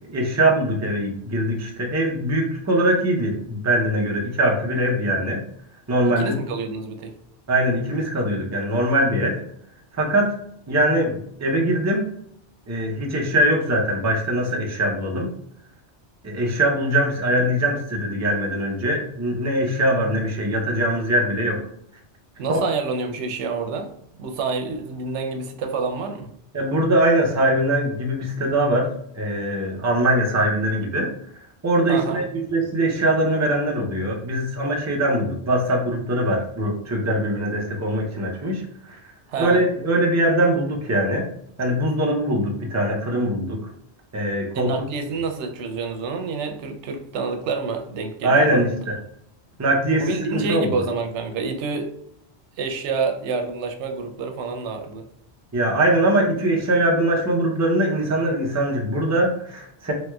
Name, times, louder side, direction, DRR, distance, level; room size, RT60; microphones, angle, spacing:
voice 1, 0.1-5.4 5.9-6.3 7.5-9.4 9.9-10.4 10.7-12.0 12.7-15.3 16.2-21.6 22.5-22.6 26.5-31.1 31.6-39.0 39.4-41.3 41.6-43.6 44.1-44.7 48.2-48.9 49.6-50.8 55.5-59.9, right 1 dB, 25° right, -1 dB, 0.4 m, -22 dB
voice 2, 6.2-7.1 22.4-23.9 24.2-26.3 31.9-32.2 39.3-39.6 44.5-48.7 50.0-51.9 52.6-55.1, right 4 dB, 90° right, 5 dB, 0.9 m, -28 dB
3.1 x 3.0 x 2.2 m, 0.69 s
omnidirectional pair, 1.1 m